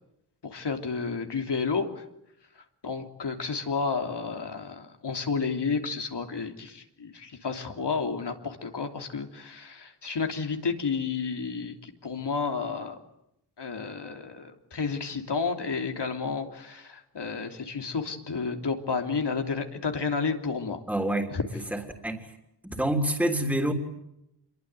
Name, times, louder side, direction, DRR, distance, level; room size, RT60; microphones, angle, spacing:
voice 1, 0.4-2.0 2.8-12.9 13.6-20.8 21.3-21.4, left 5 dB, 80° left, 4 dB, 3.3 m, -31 dB
voice 2, 20.9-21.3 21.7-22.3 22.6-23.7, right 1 dB, 5° right, 3 dB, 3.5 m, -27 dB
27.5 x 22.5 x 9.2 m, 0.83 s
wide cardioid pair, 100°, 40 cm